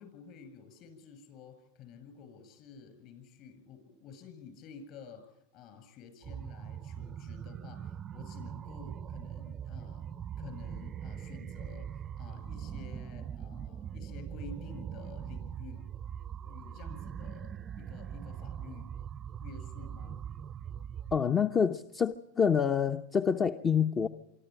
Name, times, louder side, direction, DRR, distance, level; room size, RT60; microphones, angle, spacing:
voice 1, 0.0-15.9 16.5-18.9 19.4-20.3, left 6 dB, 50° left, 7.4 m, -51 dB
sound 1, 6.2-21.2, right 9 dB, 30° right, 0.6 m, -41 dB
voice 2, 21.1-24.1, left 7 dB, 25° left, 0.8 m, -27 dB
26.0 x 12.5 x 9.1 m
supercardioid pair, 120°, 0 cm